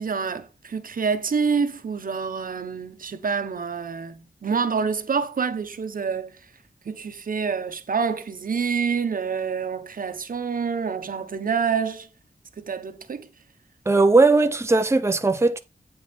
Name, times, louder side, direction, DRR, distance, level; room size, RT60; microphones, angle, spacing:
voice 1, 0.0-6.4 6.8-12.1 12.6-13.3, right 5 dB, 70° right, 1.1 m, -27 dB
voice 2, 13.9-15.6, right 3 dB, 20° right, 0.7 m, -18 dB
8.9 x 4.7 x 5.3 m
wide cardioid pair, 115°, 15 cm